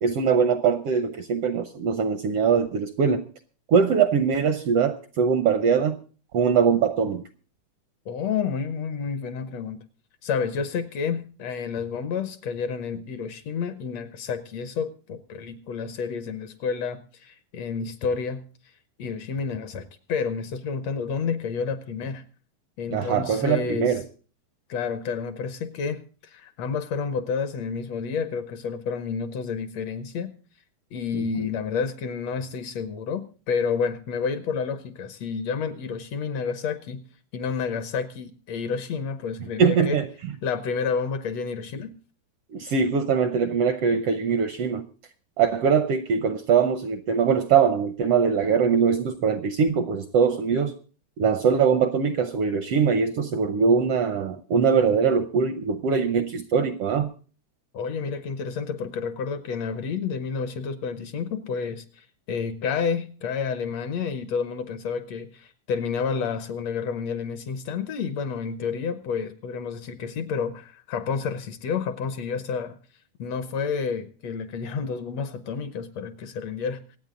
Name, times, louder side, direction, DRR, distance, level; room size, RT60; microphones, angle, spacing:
voice 1, 0.0-3.2 3.7-6.0 6.3-7.2 22.9-24.0 31.1-31.5 39.6-40.0 42.5-44.9 45.4-50.7 51.2-57.1, right 6 dB, 70° right, 10 dB, 1.5 m, -22 dB
voice 2, 8.1-9.8 10.2-18.4 19.0-22.2 22.8-23.9 24.7-30.3 30.9-37.0 37.3-40.0 40.4-42.0 57.7-72.8 73.2-76.8, left 6 dB, 65° left, 11 dB, 2.0 m, -30 dB
25.5 x 8.8 x 3.8 m, 0.38 s
omnidirectional pair, 3.5 m